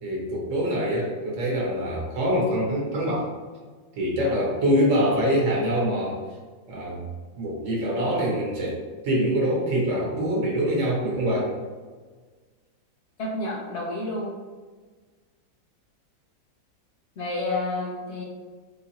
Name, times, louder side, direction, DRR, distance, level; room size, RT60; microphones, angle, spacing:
voice 1, 0.0-3.3 4.0-6.2 6.7-7.0 7.3-8.8 9.0-11.5, equal, 50° right, -3 dB, 1.2 m, -24 dB
voice 2, 13.2-14.3 17.2-18.2, left 2 dB, 80° left, -3 dB, 0.6 m, -29 dB
4.1 x 2.8 x 2.7 m, 1.4 s
omnidirectional pair, 2.0 m